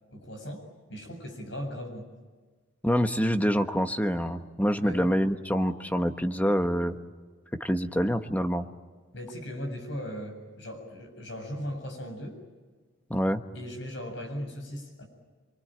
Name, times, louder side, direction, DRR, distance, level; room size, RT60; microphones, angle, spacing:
voice 1, 0.1-2.1 4.8-5.0 9.1-12.4 13.5-15.0, equal, 65° left, 4 dB, 7.5 m, -38 dB
voice 2, 2.8-7.0 7.5-8.7 13.1-13.4, equal, 10° left, 7 dB, 1.2 m, -26 dB
27.5 x 24.0 x 9.1 m, 1.4 s
head